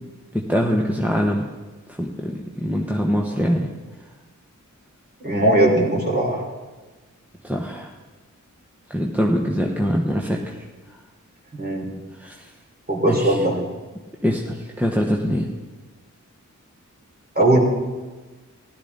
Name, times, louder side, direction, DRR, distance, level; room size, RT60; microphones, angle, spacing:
voice 1, 0.3-1.4 1.9-3.7 7.4-7.9 8.9-10.5 12.1-12.5 13.0-13.4 14.2-15.5, equal, 5° right, -1 dB, 1.1 m, -23 dB
voice 2, 5.2-6.4 11.5-11.9 12.9-13.6 17.3-17.6, right 1 dB, 30° right, -2 dB, 3.4 m, -19 dB
15.5 x 12.0 x 4.0 m, 1.3 s
wide cardioid pair, 65°, 31 cm